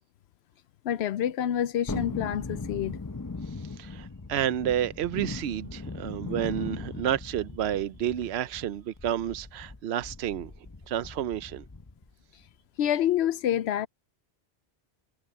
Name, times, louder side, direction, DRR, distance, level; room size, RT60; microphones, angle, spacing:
voice 1, 0.8-3.0 12.8-13.9, left 10 dB, 80° left, 0.8 m, -27 dB
Thunderstorm, 1.9-12.1 12.4-12.5, left 3 dB, 20° left, 0.8 m, -39 dB
voice 2, 3.7-10.5 10.9-11.6, right 11 dB, 80° right, 0.9 m, -30 dB
omnidirectional pair, 1.1 m